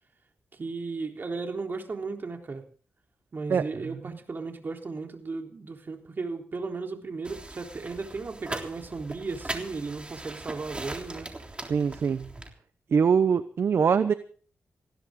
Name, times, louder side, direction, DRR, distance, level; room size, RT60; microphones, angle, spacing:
voice 1, 0.6-2.6 3.3-11.3, right 4 dB, 45° right, 3 dB, 3.7 m, -35 dB
voice 2, 3.5-4.2 11.7-12.3 12.9-14.1, right 6 dB, 65° right, 12 dB, 0.8 m, -24 dB
sound 1, 7.2-12.5, right 2 dB, 25° right, 3.5 m, -40 dB
19.5 x 16.0 x 3.8 m, 0.43 s
cardioid pair, 65°, 5 cm